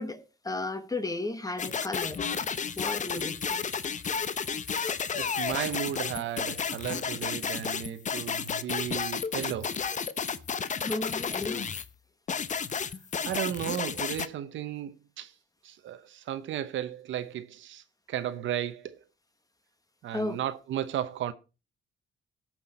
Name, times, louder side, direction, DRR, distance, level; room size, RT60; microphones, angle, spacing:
voice 1, 0.0-2.2 2.8-3.6 10.8-11.7 20.1-20.4, left 2 dB, 20° left, 1.3 m, -34 dB
sound 1, 1.6-11.9 12.3-14.3, left 6 dB, 40° left, 0.8 m, -32 dB
voice 2, 5.1-9.7 13.2-15.3 15.6-19.0 20.0-21.3, right 11 dB, 75° right, 0.9 m, -34 dB
17.0 x 6.0 x 4.2 m
cardioid pair, 90°, 20 cm